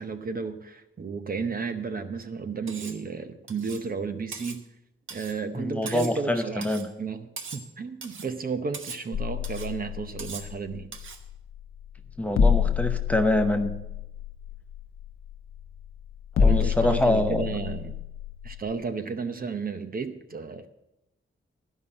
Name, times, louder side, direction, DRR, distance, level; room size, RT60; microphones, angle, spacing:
voice 1, 0.0-4.6 5.1-6.7 7.0-10.9 16.4-18.0 18.4-20.7, right 5 dB, 45° right, 8 dB, 0.8 m, -33 dB
Cutlery silverware, 2.7-3.0 3.5-3.9 4.3-4.6 5.1-5.4 5.9-6.2 6.6-6.9 7.4-7.7 8.0-8.3 8.7-9.0 9.4-9.7 10.2-10.5 10.9-11.2, right 5 dB, 70° right, 1.2 m, -40 dB
voice 2, 5.6-6.9 12.2-13.7 16.4-17.5, left 1 dB, 5° left, 6 dB, 0.8 m, -25 dB
sound 1, 9.1-18.7, left 6 dB, 75° left, 0.7 m, -28 dB
12.5 x 5.6 x 8.7 m, 0.88 s
wide cardioid pair, 155°, 21 cm